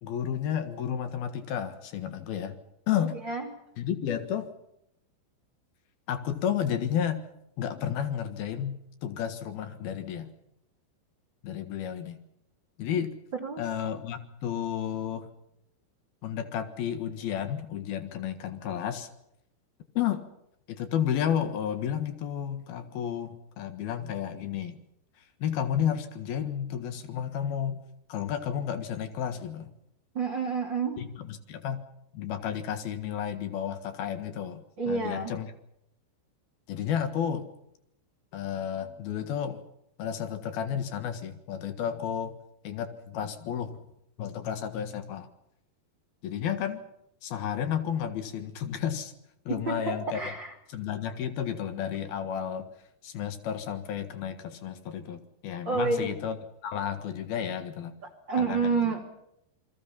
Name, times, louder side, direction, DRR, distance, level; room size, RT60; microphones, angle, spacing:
voice 1, 0.0-2.6 2.9-3.2 3.8-4.5 6.1-7.2 7.6-8.8 9.0-10.3 11.4-12.2 12.8-13.1 13.6-15.3 16.2-19.1 19.9-20.2 20.7-24.8 25.4-27.8 28.1-29.7 31.0-31.8 32.1-35.5 36.7-37.5 38.3-39.6 40.0-42.4 42.6-43.8 44.2-45.3 46.2-46.8 47.2-49.1 49.5-50.3 50.7-52.7 53.0-56.4 56.6-58.0 58.4-59.0, left 9 dB, 65° left, 9 dB, 3.0 m, -32 dB
voice 2, 30.1-31.0 34.8-35.3 49.7-50.5 55.6-56.1 58.3-59.0, right 4 dB, 30° right, 2 dB, 2.8 m, -29 dB
28.0 x 22.0 x 5.7 m, 0.78 s
omnidirectional pair, 5.6 m